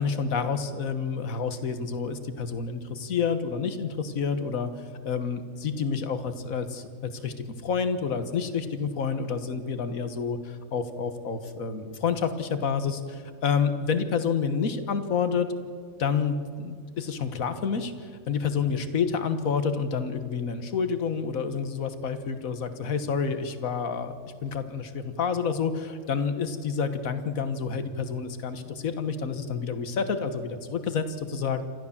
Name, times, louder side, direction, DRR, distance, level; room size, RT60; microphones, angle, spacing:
voice 1, 0.0-7.3 7.6-15.5 16.0-24.1 24.4-31.6, left 6 dB, 80° left, 10 dB, 1.7 m, -29 dB
28.0 x 13.5 x 7.2 m, 2.2 s
omnidirectional pair, 1.4 m